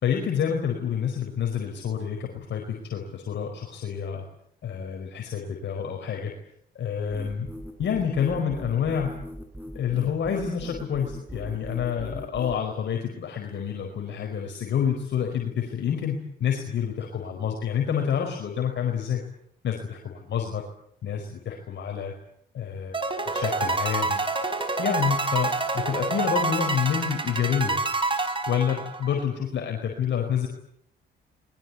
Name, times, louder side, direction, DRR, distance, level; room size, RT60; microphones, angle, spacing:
voice 1, 0.0-4.2 4.6-6.3 6.7-7.5 7.8-9.1 9.7-19.2 19.6-20.6 21.0-22.1 22.5-24.2 24.8-27.9 28.5-30.5, left 8 dB, 65° left, 2 dB, 4.9 m, -28 dB
sound 1, 7.1-12.6, equal, 10° right, 5.7 m, -40 dB
sound 2, 22.9-29.2, right 3 dB, 25° right, 4.5 m, -27 dB
26.5 x 22.0 x 8.5 m, 0.68 s
cardioid pair, 90°, 20 cm